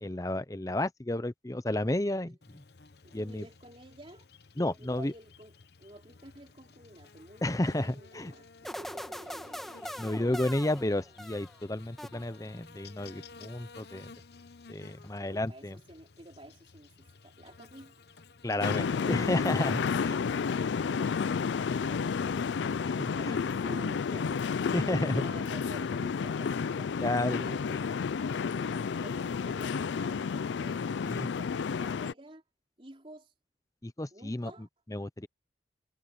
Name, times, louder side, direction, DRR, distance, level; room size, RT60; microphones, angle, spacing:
voice 1, 0.0-2.6 3.1-3.4 4.6-5.1 7.4-8.3 10.0-14.1 14.7-15.8 18.4-20.2 22.9-23.4 24.7-25.2 27.0-27.4 31.0-31.3 33.8-34.5 34.9-35.3, left 1 dB, 20° left, 0.7 m, -32 dB
Buzz, 2.4-21.9, left 4 dB, 65° left, 0.9 m, -55 dB
voice 2, 3.0-4.3 4.6-5.5 5.8-10.4 15.2-17.9 18.7-22.6 23.1-27.0 27.4-28.1 28.5-32.4 32.8-33.3 34.1-34.7, right 1 dB, 30° right, 4.5 m, -50 dB
sound 1, 8.6-11.6 12.0-12.6, equal, ahead, 1.7 m, -42 dB
sound 2, 18.6-32.1, left 6 dB, 90° left, 0.4 m, -31 dB
head